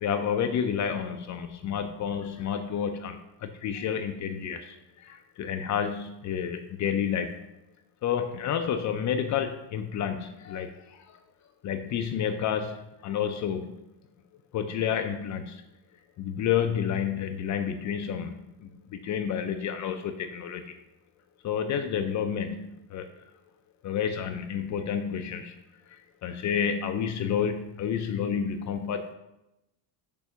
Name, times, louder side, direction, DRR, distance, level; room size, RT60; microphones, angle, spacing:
voice 1, 0.0-7.5 8.0-11.2 11.6-13.8 14.5-15.6 16.2-18.3 18.6-20.8 21.4-23.1 23.8-25.6 26.2-29.1, left 8 dB, 45° left, 7 dB, 0.5 m, -30 dB
6.7 x 2.7 x 5.7 m, 0.90 s
cardioid pair, 135°, 42 cm